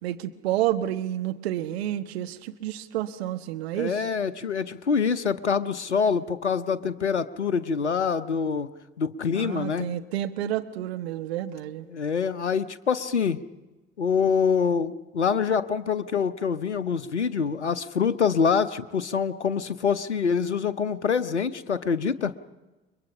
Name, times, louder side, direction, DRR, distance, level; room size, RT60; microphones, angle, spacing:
voice 1, 0.0-4.0 9.3-11.9, right 13 dB, 65° right, 8 dB, 1.4 m, -30 dB
voice 2, 3.7-8.7 9.0-9.9 11.9-13.4 14.0-22.3, left 6 dB, 85° left, 13 dB, 0.7 m, -25 dB
29.5 x 22.0 x 5.6 m, 1.1 s
figure-of-eight pair, 60°, 34 cm